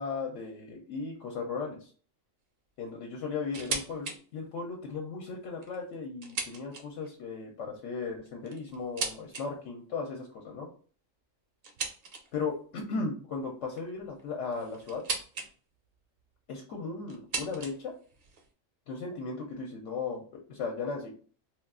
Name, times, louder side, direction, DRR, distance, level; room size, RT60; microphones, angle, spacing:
voice 1, 0.0-1.9 2.8-10.7 12.3-15.0 16.5-17.9 18.9-21.1, left 4 dB, 70° left, 1 dB, 0.9 m, -36 dB
sound 1, 3.5-4.2 4.6-4.7 5.4-7.1 8.1-9.5 11.6-12.5 13.7-15.5 15.8-16.3 17.1-18.5, right 4 dB, 55° right, 0.7 m, -38 dB
2.3 x 2.3 x 3.5 m, 0.42 s
omnidirectional pair, 1.3 m